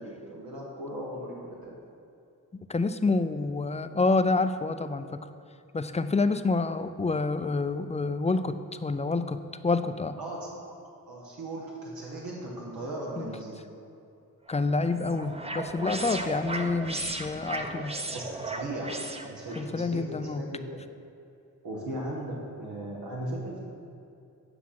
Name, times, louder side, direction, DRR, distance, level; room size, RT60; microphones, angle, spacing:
voice 1, 0.0-1.7 10.2-10.8 11.1-13.6 18.1-20.8 21.6-23.6, right 1 dB, 85° right, -4 dB, 1.7 m, -37 dB
voice 2, 2.7-5.2 5.7-10.2 13.2-13.3 14.5-18.0 19.6-20.4, left 3 dB, 20° left, 10 dB, 0.4 m, -28 dB
sound 1, 14.5-19.7, right 2 dB, 15° right, 0.7 m, -36 dB
9.5 x 5.8 x 5.9 m, 2.6 s
cardioid pair, 75°, 35 cm